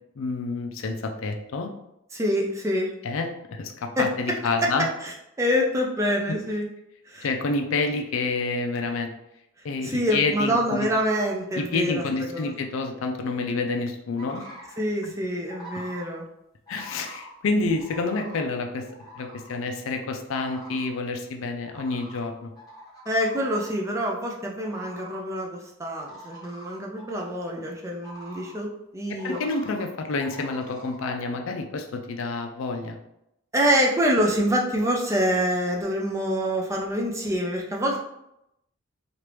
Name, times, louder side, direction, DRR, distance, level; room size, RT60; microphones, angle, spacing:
voice 1, 0.2-1.7 3.0-4.9 6.3-6.4 7.2-9.1 9.6-10.9 11.6-14.5 15.0-15.1 16.7-18.8 19.2-22.5 29.2-33.0, left 3 dB, 65° left, 4 dB, 0.4 m, -28 dB
voice 2, 2.1-2.9 4.0-4.7 5.0-6.7 7.1-7.3 9.8-12.0 12.3-12.5 14.8-16.2 23.1-29.4 33.5-38.0, equal, 15° right, 0 dB, 0.3 m, -26 dB
sound 1, 14.2-14.8 15.5-16.1 16.7-17.3 17.7-18.4 18.9-19.6 20.3-20.9 21.6-22.3 22.6-23.8 24.6-25.2 26.0-27.3 28.0-28.5 29.2-29.8 30.2-31.0, equal, 15° left, 0.8 m, -44 dB
3.2 x 2.5 x 3.0 m, 0.84 s
head